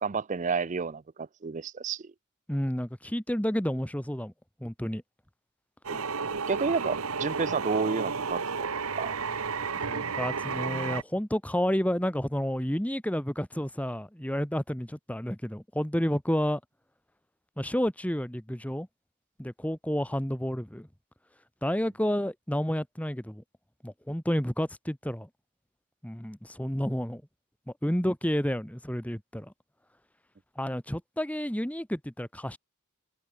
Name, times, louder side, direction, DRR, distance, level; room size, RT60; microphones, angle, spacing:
voice 1, 0.0-2.1 5.9-6.1 6.5-8.7 9.0-9.1, right 5 dB, 35° right, 0.5 m, -30 dB
voice 2, 2.5-4.3 4.6-5.0 9.9-16.6 17.6-18.9 19.4-20.9 21.6-23.4 23.8-25.3 26.0-27.2 27.8-29.5 30.5-32.6, equal, 5° left, 1.6 m, -30 dB
sound 1, 5.8-11.0, right 5 dB, 75° right, 1.3 m, -32 dB
head